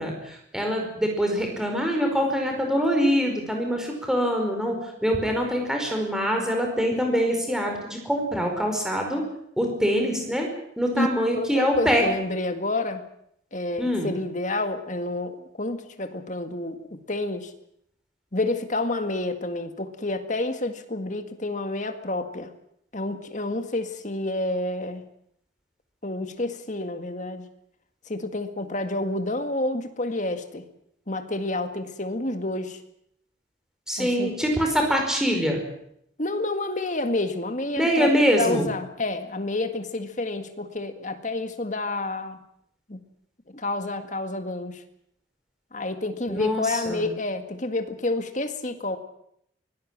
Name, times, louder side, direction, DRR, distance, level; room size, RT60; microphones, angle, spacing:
voice 1, 0.0-4.7 5.0-9.2 9.6-10.5 10.8-12.0 13.8-14.1 33.9-35.6 37.8-38.7 46.3-47.1, equal, 5° right, 2 dB, 4.9 m, -24 dB
voice 2, 11.4-13.0 13.5-17.5 18.3-22.5 22.9-25.1 26.0-27.5 28.1-30.6 31.1-32.8 34.0-34.4 36.2-38.1 38.4-42.4 42.9-43.0 43.5-44.8 45.7-49.0, left 2 dB, 40° left, 7 dB, 1.9 m, -29 dB
24.0 x 18.0 x 7.5 m, 0.73 s
head